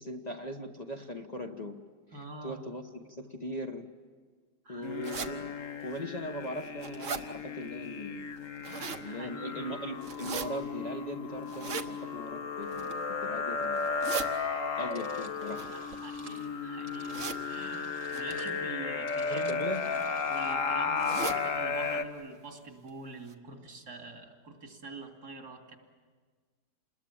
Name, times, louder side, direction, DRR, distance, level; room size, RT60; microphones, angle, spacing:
voice 1, 0.0-1.8 2.1-3.9 4.7-5.5 5.8-8.2 9.0-13.9 14.8-15.9 19.3-19.8, equal, 30° left, 2 dB, 1.1 m, -39 dB
voice 2, 2.1-2.6 4.6-5.0 8.6-9.6 14.8-14.9 15.7-20.0 20.3-25.8, right 3 dB, 75° right, 3 dB, 3.3 m, -45 dB
sound 1, 4.8-22.0, left 5 dB, 55° left, 1.5 m, -34 dB
sound 2, 5.0-5.3 5.9-6.0 6.5-7.2 8.4-9.0 10.0-10.5 11.5-11.9 12.6-13.0 13.8-14.3 15.4-16.4 17.1-17.4 18.1-18.3 19.3-19.6 20.0-20.1 20.3-20.4 21.0-21.4 21.8-21.9 22.2-22.3 22.9-23.0 23.3-23.4, right 5 dB, 50° right, 1.4 m, -38 dB
sound 3, 14.8-20.6, right 3 dB, 25° right, 1.3 m, -53 dB
28.0 x 21.0 x 8.7 m, 1.5 s
omnidirectional pair, 1.7 m